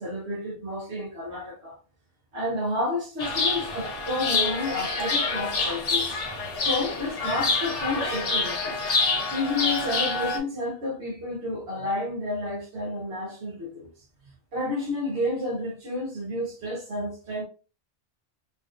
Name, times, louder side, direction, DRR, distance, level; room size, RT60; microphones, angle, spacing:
voice 1, 0.0-1.8 2.3-6.2 6.6-8.8 9.3-13.9 14.5-17.4, left 2 dB, 65° right, 1.4 m, -30 dB
Chirp tweet, 3.2-10.4, left 3 dB, 80° left, 1.3 m, -27 dB
4.0 x 2.5 x 2.5 m
omnidirectional pair, 1.2 m